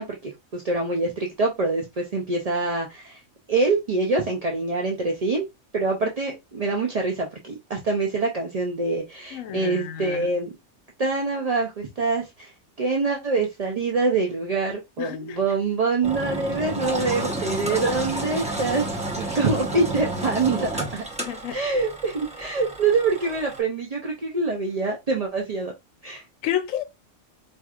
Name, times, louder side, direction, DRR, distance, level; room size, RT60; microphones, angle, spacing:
voice 1, 0.0-3.2 3.5-5.4 5.7-10.5 11.0-12.5 12.8-18.9 19.2-21.0 21.5-25.7 26.0-26.2, right 3 dB, 45° right, 0.5 m, -25 dB
voice 2, 9.3-10.3 15.0-15.4 21.2-21.6 26.1-26.8, left 10 dB, 75° left, 1.0 m, -31 dB
Engine, 16.0-23.6, right 1 dB, 5° right, 0.7 m, -31 dB
4.5 x 2.7 x 2.4 m
omnidirectional pair, 1.4 m